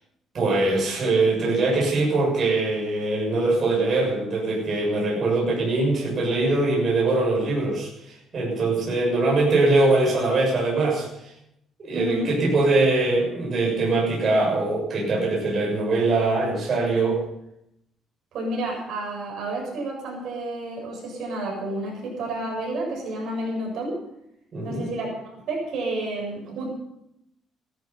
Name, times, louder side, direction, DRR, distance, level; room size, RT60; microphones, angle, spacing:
voice 1, 0.3-11.1 11.8-17.2 24.5-24.9, right 2 dB, 35° right, -3 dB, 7.2 m, -22 dB
voice 2, 11.9-12.3 18.3-24.0 24.6-26.7, right 1 dB, 60° right, -1 dB, 7.8 m, -30 dB
17.5 x 14.0 x 5.7 m, 0.80 s
cardioid pair, 160°, 0 cm